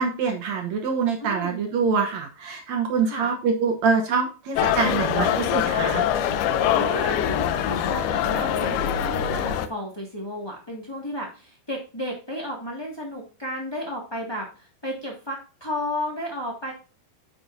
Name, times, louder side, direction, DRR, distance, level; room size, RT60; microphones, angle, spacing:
voice 1, 0.0-6.0, right 5 dB, 75° right, 3 dB, 1.7 m, -25 dB
voice 2, 1.2-1.6 3.0-3.3 6.7-16.7, equal, 45° left, -2 dB, 0.3 m, -33 dB
sound 1, 4.6-9.7, left 9 dB, 80° left, 2.7 m, -23 dB
9.2 x 7.8 x 2.7 m, 0.34 s
omnidirectional pair, 4.5 m